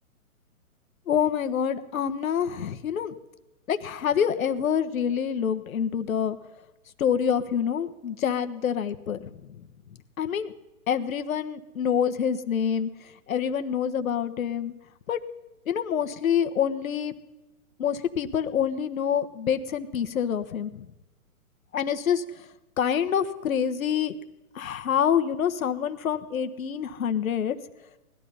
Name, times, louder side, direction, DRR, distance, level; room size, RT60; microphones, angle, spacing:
voice 1, 1.1-3.1 3.7-6.4 7.0-9.3 10.2-10.5 10.9-12.9 13.3-14.7 15.1-15.2 15.7-17.1 17.8-20.8 21.7-22.5 22.8-24.1 24.5-27.6, left 8 dB, 70° left, 9 dB, 1.3 m, -26 dB
19.5 x 12.5 x 5.5 m, 1.0 s
hypercardioid pair, 145°, 43 cm